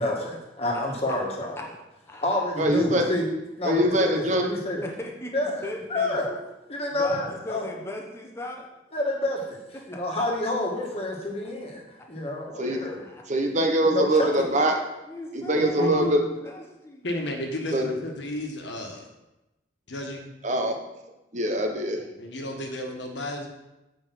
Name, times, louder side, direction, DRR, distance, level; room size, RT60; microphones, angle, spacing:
voice 1, 0.0-1.6 2.2-3.3 3.6-4.8 5.3-5.6 5.9-6.4 6.7-7.7 8.9-9.6 9.9-13.1 13.9-14.7, left 1 dB, 35° left, -1 dB, 1.7 m, -29 dB
voice 2, 2.1-2.4 4.8-5.3 5.6-6.2 6.9-8.7 9.9-10.0 12.6-13.2 15.1-16.1 16.4-17.1, left 1 dB, 15° left, -1 dB, 1.0 m, -38 dB
voice 3, 2.6-3.0 3.6-4.5 12.6-12.8 13.3-14.7 15.3-16.2 17.7-17.9 20.4-20.8 21.3-22.0, right 1 dB, 40° right, 3 dB, 1.0 m, -23 dB
voice 4, 15.5-16.2 17.0-19.1 19.9-20.3 22.2-23.5, left 1 dB, 75° left, 2 dB, 1.4 m, -32 dB
8.0 x 5.1 x 6.0 m, 0.96 s
head